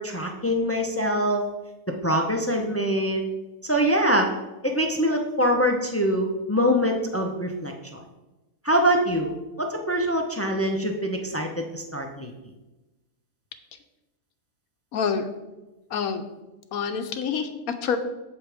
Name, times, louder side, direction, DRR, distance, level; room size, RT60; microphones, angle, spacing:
voice 1, 0.0-1.4 2.0-3.2 3.6-4.3 4.6-8.0 8.6-12.3, equal, 15° left, 3 dB, 0.4 m, -24 dB
voice 2, 14.9-15.3 15.9-16.2 16.7-18.0, left 6 dB, 70° left, 8 dB, 1.1 m, -27 dB
8.4 x 7.7 x 3.5 m, 1.1 s
omnidirectional pair, 1.6 m